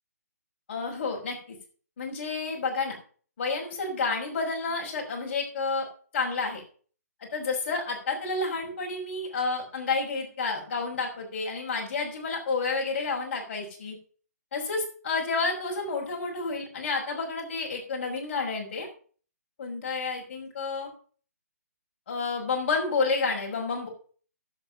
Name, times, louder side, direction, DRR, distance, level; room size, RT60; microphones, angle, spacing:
voice 1, 0.7-1.6 2.0-3.0 3.4-5.9 6.1-6.6 7.2-14.0 14.5-18.9 19.6-20.9 22.1-23.9, left 4 dB, 40° left, -1 dB, 5.8 m, -30 dB
11.0 x 7.7 x 7.2 m, 0.43 s
hypercardioid pair, 160°, 9 cm